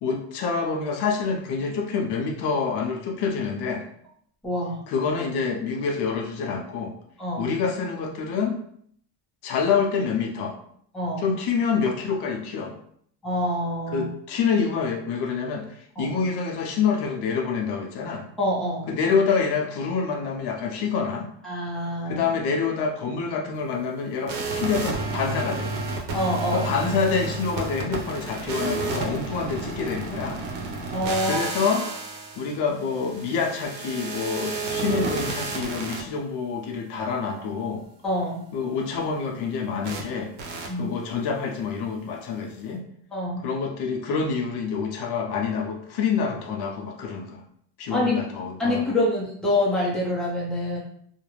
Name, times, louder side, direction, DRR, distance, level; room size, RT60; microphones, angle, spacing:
voice 1, 0.0-3.8 4.9-6.9 7.4-8.6 9.4-10.6 11.2-12.7 13.9-15.7 16.0-18.2 18.9-21.3 22.1-25.7 26.5-30.4 31.2-31.9 32.4-37.8 38.5-40.3 40.7-42.8 43.4-47.4 47.8-48.9, left 5 dB, 60° left, 2 dB, 0.6 m, -27 dB
voice 2, 4.4-4.8 7.2-7.5 10.9-11.3 13.2-14.1 16.0-16.1 18.4-18.9 21.4-22.2 26.1-26.7 30.9-31.5 38.0-38.4 40.7-40.9 43.1-43.4 47.9-48.2 48.6-50.8, left 1 dB, ahead, -6 dB, 0.6 m, -26 dB
sound 1, 24.3-36.0 39.8-40.0 40.4-40.7, right 3 dB, 85° right, 0.8 m, -31 dB
2.4 x 2.1 x 3.0 m, 0.64 s
cardioid pair, 140°, 44 cm